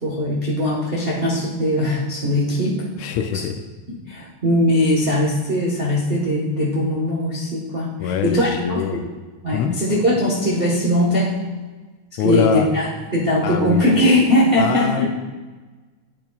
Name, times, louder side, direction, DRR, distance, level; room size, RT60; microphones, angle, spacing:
voice 1, 0.0-2.8 3.3-3.4 4.1-9.1 9.4-11.3 12.2-15.1, left 1 dB, 80° right, -5 dB, 0.5 m, -20 dB
voice 2, 3.0-3.6 8.0-9.0 9.5-9.8 12.2-12.7 13.4-13.8 14.6-15.1, left 8 dB, 80° left, 6 dB, 1.8 m, -23 dB
11.0 x 8.6 x 2.4 m, 1.3 s
omnidirectional pair, 3.4 m